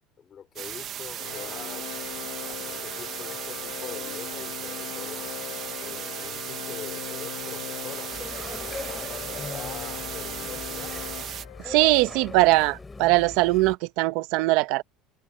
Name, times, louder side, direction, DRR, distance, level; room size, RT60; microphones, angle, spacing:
voice 1, 0.2-1.9 2.5-5.4 5.8-8.1 8.6-10.9, left 8 dB, 25° left, 4.5 m, -44 dB
sound 1, 0.6-11.5, right 10 dB, 35° right, 1.0 m, -36 dB
Organ, 1.2-12.0, left 19 dB, 75° left, 1.5 m, -39 dB
sound 2, 8.1-13.8, left 3 dB, 10° left, 4.1 m, -40 dB
voice 2, 11.7-14.8, right 20 dB, 65° right, 1.0 m, -21 dB
cardioid pair, 165°, 0 cm